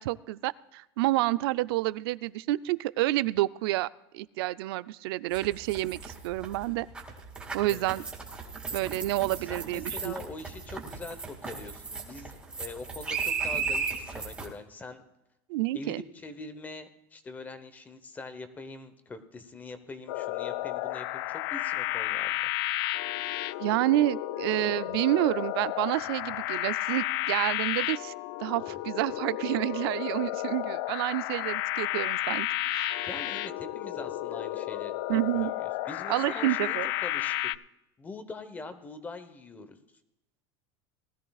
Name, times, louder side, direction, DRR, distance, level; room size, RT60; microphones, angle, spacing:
voice 1, 0.0-3.9 4.1-6.9 7.5-8.0 8.7-10.1 15.5-16.0 23.6-28.1 28.4-33.1 35.1-35.5 36.1-36.9, right 17 dB, 75° right, 17 dB, 0.5 m, -29 dB
sound 1, 5.3-14.5, right 5 dB, 10° right, 2.3 m, -35 dB
voice 2, 9.4-15.0 15.7-22.5 33.1-34.9 35.3-37.3 38.0-39.8, left 3 dB, 15° left, 11 dB, 0.9 m, -43 dB
sound 2, 20.1-37.6, left 16 dB, 70° left, 0.4 m, -32 dB
19.5 x 13.5 x 2.4 m, 0.92 s
supercardioid pair, 165°, 13 cm